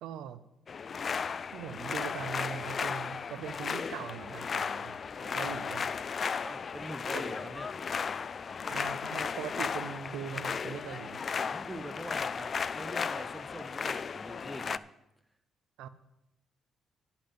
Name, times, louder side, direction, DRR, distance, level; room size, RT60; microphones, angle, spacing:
voice 1, 0.0-0.4 1.5-4.9 5.2-5.9 7.1-7.2 8.7-11.2 15.8-15.9, right 9 dB, 85° right, 13 dB, 0.6 m, -41 dB
sound 1, 0.7-14.8, left 6 dB, 45° left, 0.3 m, -35 dB
voice 2, 6.4-7.7 11.4-12.5 12.7-14.8, right 1 dB, 10° right, 8 dB, 1.1 m, -43 dB
10.5 x 5.7 x 8.7 m, 0.86 s
cardioid pair, 90°, 0 cm